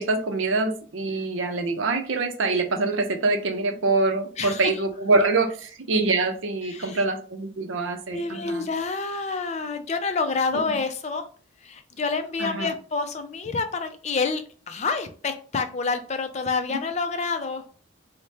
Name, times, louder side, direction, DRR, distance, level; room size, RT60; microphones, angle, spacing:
voice 1, 0.0-8.6 12.4-12.7 16.7-16.8, right 3 dB, 80° right, 6 dB, 0.6 m, -25 dB
voice 2, 4.4-4.8 6.6-7.0 8.1-11.3 11.6-17.7, left 4 dB, 35° left, 8 dB, 0.4 m, -28 dB
4.1 x 2.1 x 3.3 m, 0.41 s
head